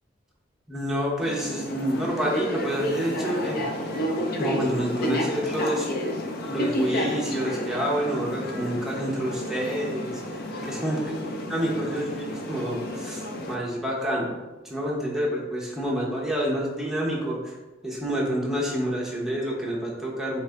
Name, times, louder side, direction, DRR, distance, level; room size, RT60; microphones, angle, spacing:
voice 1, 0.7-3.6 4.4-5.9 6.5-10.2 10.6-14.4 14.6-17.6 17.8-20.4, equal, ahead, -5 dB, 0.8 m, -28 dB
sound 1, 1.2-13.6, equal, 55° left, 0.5 m, -31 dB
4.2 x 2.5 x 3.3 m, 1.1 s
head